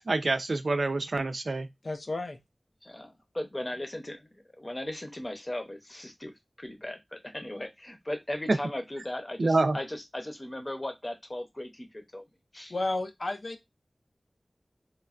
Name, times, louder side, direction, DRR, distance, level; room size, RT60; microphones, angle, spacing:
voice 1, 0.1-1.7 9.4-9.8, right 2 dB, 80° right, 0.3 m, -26 dB
voice 2, 1.8-2.4 12.7-13.6, left 2 dB, 70° left, 0.5 m, -32 dB
voice 3, 2.8-12.2 12.5-12.7, left 1 dB, 35° left, 0.7 m, -37 dB
3.1 x 2.2 x 2.4 m
wide cardioid pair, 45°, 0 cm